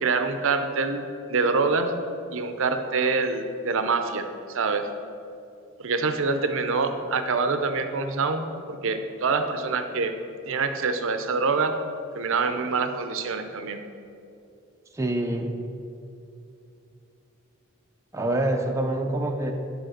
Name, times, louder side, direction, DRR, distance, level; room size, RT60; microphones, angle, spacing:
voice 1, 0.0-1.9 2.3-4.9 5.8-10.1 10.5-11.7 12.1-13.8, right 4 dB, 65° right, 8 dB, 0.6 m, -25 dB
voice 2, 14.9-15.5 18.1-19.5, right 1 dB, 15° right, 3 dB, 0.5 m, -26 dB
9.0 x 4.9 x 6.5 m, 2.7 s
head